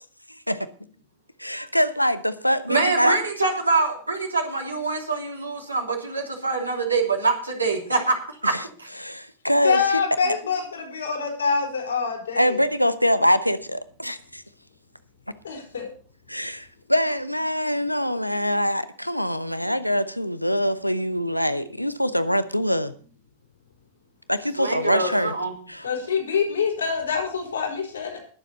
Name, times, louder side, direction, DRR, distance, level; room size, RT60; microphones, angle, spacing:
voice 1, 1.4-3.2 8.4-8.6 9.0-9.8 12.4-14.4 16.3-22.9 24.3-25.3 25.7-25.9, equal, 90° left, 13 dB, 0.8 m, -24 dB
voice 2, 2.7-8.2 8.4-8.5 8.8-8.9 24.6-25.5, right 3 dB, 80° right, 1 dB, 3.0 m, -24 dB
voice 3, 9.6-12.6 15.4-15.9 25.8-28.2, left 6 dB, 70° left, 2 dB, 4.5 m, -25 dB
20.5 x 7.4 x 4.2 m, 0.42 s
figure-of-eight pair, 90°, 0 cm